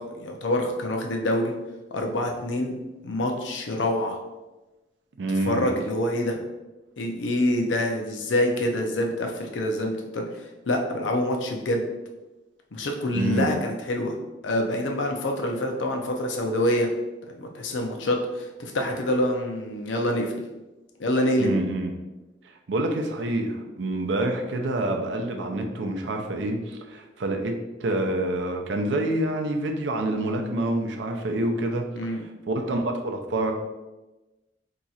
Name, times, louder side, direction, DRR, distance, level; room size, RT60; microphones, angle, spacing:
voice 1, 0.0-1.5 1.9-2.8 3.0-4.2 5.4-6.4 7.0-10.2 10.7-11.8 12.7-14.2 14.4-16.9 17.3-20.4 21.0-21.5 32.0-32.2, left 1 dB, 85° left, 2 dB, 0.6 m, -26 dB
voice 2, 5.2-5.7 13.1-13.5 21.4-21.9 22.7-31.8 32.5-33.5, right 1 dB, 80° right, 3 dB, 0.5 m, -27 dB
2.9 x 2.4 x 4.0 m, 1.1 s
head